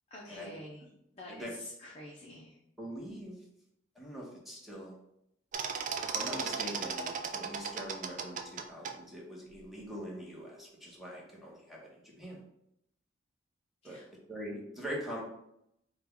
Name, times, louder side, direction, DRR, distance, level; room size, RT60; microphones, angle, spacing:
voice 1, 0.1-2.6 13.8-14.1, left 1 dB, 35° left, -4 dB, 0.6 m, -48 dB
voice 2, 2.8-3.4 3.9-5.0 6.0-12.4 13.8-14.0 14.3-15.2, equal, ahead, -4 dB, 1.0 m, -43 dB
sound 1, 5.5-8.9, right 6 dB, 40° right, 0.4 m, -36 dB
4.6 x 2.3 x 3.5 m, 0.78 s
head